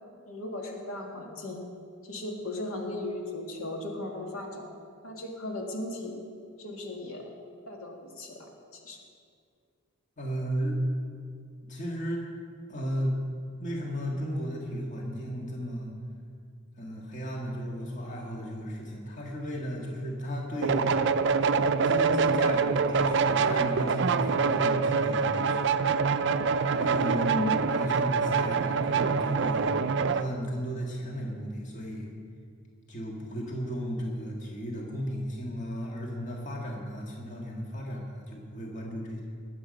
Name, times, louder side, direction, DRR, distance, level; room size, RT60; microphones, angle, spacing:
voice 1, 0.3-1.6 2.0-4.7 5.0-6.1 6.6-7.3 7.7-9.0 27.0-27.6 33.3-33.4, left 1 dB, 75° left, 0 dB, 2.0 m, -36 dB
voice 2, 10.2-10.8 11.7-12.2 12.7-13.2 13.6-15.9 16.8-20.9 21.8-25.9 26.6-29.7 30.1-32.1 32.9-39.2, equal, 35° left, -1 dB, 1.7 m, -34 dB
sound 1, 20.6-30.3, right 5 dB, 55° right, 0.4 m, -25 dB
20.0 x 8.0 x 5.2 m, 2.3 s
head